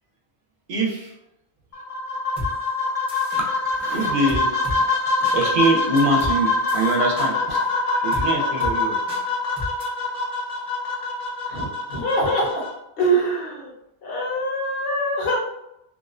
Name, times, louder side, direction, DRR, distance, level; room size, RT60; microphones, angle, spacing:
voice 1, 0.7-1.1 3.4-9.0, right 2 dB, 65° right, -2 dB, 0.7 m, -24 dB
sound 1, 1.7-12.7, left 3 dB, 45° left, 0.6 m, -24 dB
sound 2, 2.4-2.5 3.1-3.4 4.3-4.8 5.2-5.4 6.0-6.4 6.7-7.3 8.1-8.3 8.6-8.7 9.1-9.2 9.6-9.8, left 1 dB, 5° right, 0.6 m, -31 dB
voice 2, 11.5-12.6 13.0-13.7 14.0-15.4, right 1 dB, 65° left, -3 dB, 1.0 m, -24 dB
2.5 x 2.1 x 2.4 m, 0.84 s
omnidirectional pair, 1.0 m